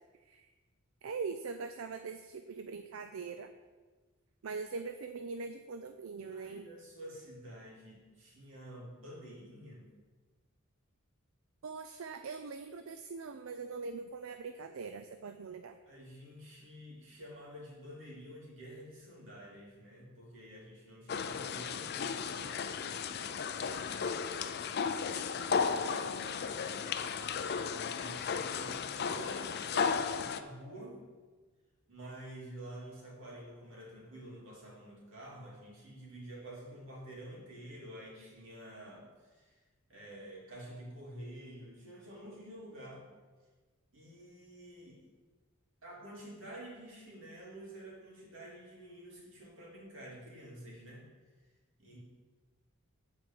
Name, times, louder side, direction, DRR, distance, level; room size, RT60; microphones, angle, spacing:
voice 1, 1.0-3.5 4.4-6.7 11.6-15.8, right 4 dB, 85° right, 8 dB, 0.5 m, -42 dB
voice 2, 6.3-9.9 15.8-24.2 25.9-26.9 27.7-31.0 31.9-39.5 39.9-43.0 43.9-45.0 45.8-51.1 51.8-52.0, right 1 dB, 70° right, -4 dB, 3.0 m, -49 dB
sound 1, 21.1-30.4, left 6 dB, 50° left, 0.4 m, -35 dB
8.5 x 4.6 x 7.5 m, 1.3 s
head